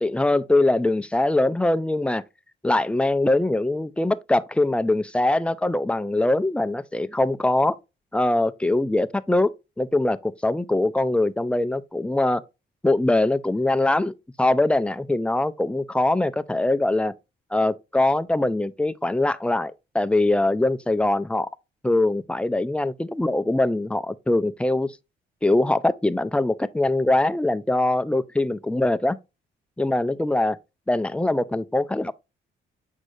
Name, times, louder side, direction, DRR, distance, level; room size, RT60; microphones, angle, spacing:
voice 1, 0.0-2.2 2.6-7.8 8.1-9.5 9.8-12.4 12.8-17.1 17.5-21.5 21.8-24.9 25.4-29.2 29.8-30.6 30.9-32.1, left 2 dB, 5° left, 0.4 m, -22 dB
7.5 x 4.8 x 2.6 m
cardioid pair, 90°, 20 cm